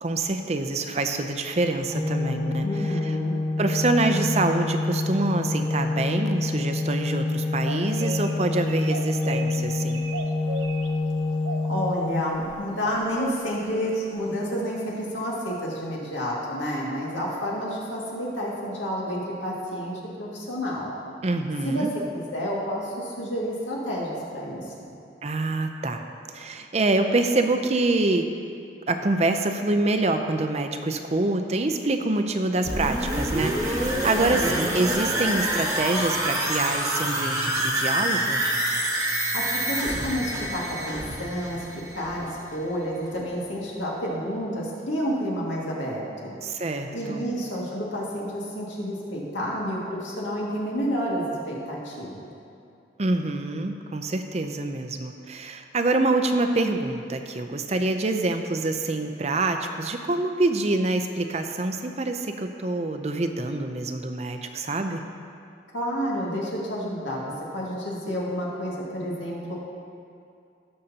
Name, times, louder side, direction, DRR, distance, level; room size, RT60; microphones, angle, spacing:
voice 1, 0.0-2.7 3.6-10.0 21.2-21.9 25.2-26.0 26.3-28.3 28.9-38.4 46.4-47.2 53.0-65.0, right 2 dB, 35° right, 6 dB, 0.5 m, -26 dB
Organ, 1.9-12.8, left 2 dB, 15° left, 0.6 m, -27 dB
voice 2, 2.6-3.4 11.7-20.9 21.6-24.9 34.2-34.7 39.3-41.6 41.9-46.4 46.9-52.3 65.7-69.6, equal, 90° left, -5 dB, 2.2 m, -30 dB
sound 1, 7.6-8.3 8.6-9.5 9.9-10.9 11.4-12.0 12.8-13.3, right 2 dB, 85° right, 0.7 m, -34 dB
sound 2, 32.7-42.4 42.7-42.8, right 1 dB, 15° right, 1.2 m, -27 dB
18.0 x 6.6 x 2.9 m, 2.5 s
head